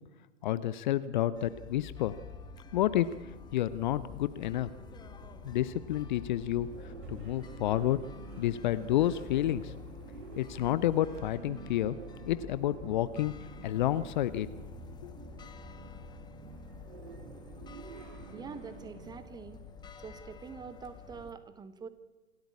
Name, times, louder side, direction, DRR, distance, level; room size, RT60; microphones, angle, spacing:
voice 1, 0.4-2.2 2.7-4.7 5.4-8.0 8.4-9.7 10.4-12.0 12.3-13.3 13.6-14.5 15.0-15.1, left 13 dB, 40° left, 16 dB, 0.7 m, -30 dB
sound 1, 1.3-21.3, left 5 dB, 10° left, 1.7 m, -48 dB
sound 2, 1.7-19.0, right 5 dB, 40° right, 6.4 m, -57 dB
sound 3, 6.5-19.2, right 6 dB, 60° right, 1.6 m, -50 dB
voice 2, 18.3-19.6 20.0-21.9, right 5 dB, 10° right, 12 dB, 1.2 m, -45 dB
27.0 x 13.0 x 8.5 m, 1.2 s
figure-of-eight pair, 115°, 37 cm